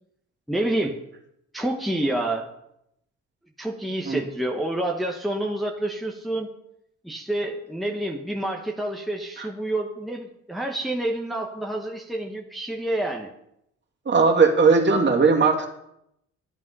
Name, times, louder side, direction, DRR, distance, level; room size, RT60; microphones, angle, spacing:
voice 1, 0.5-1.0 1.5-2.5 3.6-6.5 7.0-13.3, right 1 dB, ahead, 1 dB, 1.3 m, -28 dB
voice 2, 14.1-15.7, right 4 dB, 35° right, 1 dB, 2.6 m, -18 dB
11.5 x 10.5 x 5.6 m, 0.79 s
cardioid pair, 90°, 30 cm